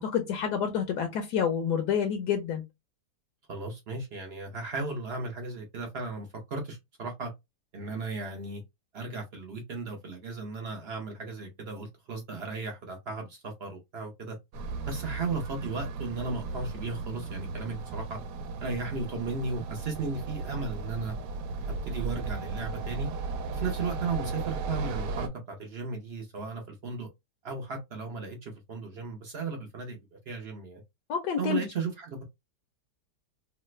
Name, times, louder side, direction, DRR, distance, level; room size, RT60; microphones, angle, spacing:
voice 1, 0.0-2.6 31.1-31.6, left 8 dB, 80° left, 1.2 m, -28 dB
voice 2, 3.5-7.3 7.7-8.6 8.9-14.4 14.9-18.2 18.6-21.1 21.6-23.1 23.5-27.1 27.4-30.0 30.3-30.8 31.4-32.2, right 4 dB, 60° right, 0.6 m, -35 dB
sound 1, 14.5-25.3, right 3 dB, 75° right, 1.1 m, -35 dB
3.2 x 2.0 x 3.1 m
omnidirectional pair, 1.8 m